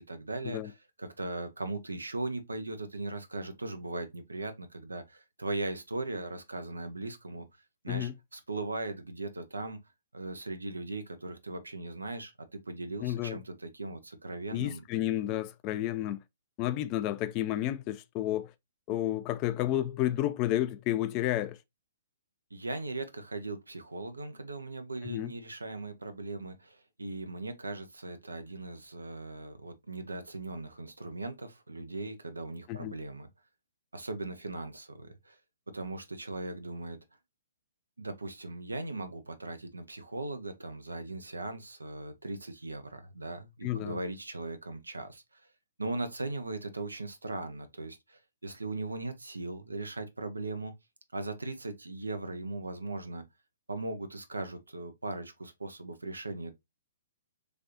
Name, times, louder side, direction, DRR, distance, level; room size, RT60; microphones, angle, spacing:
voice 1, 0.0-7.5 7.8-9.8 10.1-14.8 22.5-33.3 33.9-35.4 35.7-37.0 38.0-45.4 45.8-50.7 51.1-53.2 53.7-56.5, right 2 dB, 90° right, 0.7 m, -39 dB
voice 2, 13.0-13.4 14.5-16.2 16.6-18.5 18.9-21.6 25.0-25.3 32.7-32.9 43.6-44.0, left 13 dB, 30° left, 0.3 m, -31 dB
3.3 x 2.5 x 2.7 m
figure-of-eight pair, 130°, 0 cm